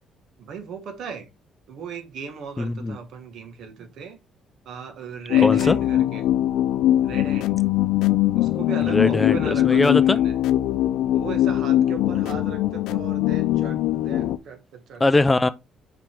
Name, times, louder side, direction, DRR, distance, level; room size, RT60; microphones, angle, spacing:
voice 1, 0.4-1.3 1.7-4.2 4.6-6.3 7.0-7.6 8.3-10.4 11.1-15.0, right 6 dB, 60° right, 1.5 m, -37 dB
voice 2, 2.6-3.0 5.4-5.8 8.8-10.2 15.0-15.5, left 2 dB, 15° left, 0.4 m, -21 dB
sound 1, 5.3-14.4, left 13 dB, 80° left, 0.5 m, -21 dB
5.6 x 5.1 x 3.6 m
cardioid pair, 145°, 0 cm